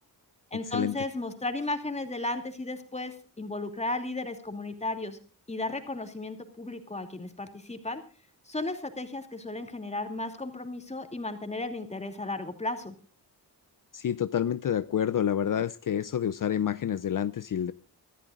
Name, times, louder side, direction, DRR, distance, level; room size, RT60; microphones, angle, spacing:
voice 1, 0.5-5.2 5.5-8.0 8.5-12.9, left 2 dB, 15° left, 6 dB, 2.7 m, -34 dB
voice 2, 13.9-17.7, left 9 dB, 55° left, 15 dB, 0.6 m, -28 dB
24.0 x 15.0 x 2.5 m, 0.38 s
wide cardioid pair, 140°, 39 cm